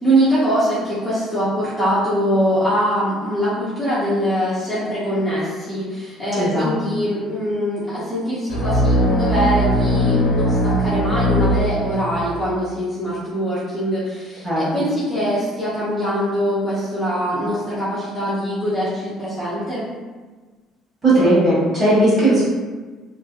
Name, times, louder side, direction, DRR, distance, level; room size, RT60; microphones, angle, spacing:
voice 1, 0.0-19.9 22.2-22.4, equal, 10° left, -12 dB, 0.6 m, -22 dB
voice 2, 6.4-6.7 14.4-14.6 21.0-22.4, right 1 dB, 20° right, -9 dB, 1.2 m, -16 dB
sound 1, 8.5-12.3, equal, 45° left, 0.8 m, -19 dB
2.7 x 2.7 x 2.4 m, 1.3 s
cardioid pair, 170°, 0 cm